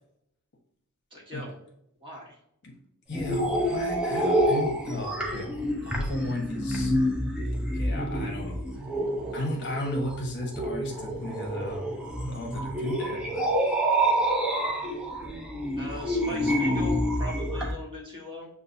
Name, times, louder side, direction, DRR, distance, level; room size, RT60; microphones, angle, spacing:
voice 1, 1.1-1.5 2.0-2.4 15.0-15.1 15.8-18.5, left 1 dB, 25° right, -4 dB, 1.4 m, -40 dB
voice 2, 3.1-5.5 5.8-6.9 7.7-8.6 9.3-11.9 12.3-13.5 16.3-16.6, left 1 dB, 50° left, 0 dB, 1.1 m, -34 dB
sound 1, 3.1-17.7, right 1 dB, 5° right, 0.6 m, -28 dB
7.0 x 2.5 x 2.6 m, 0.77 s
head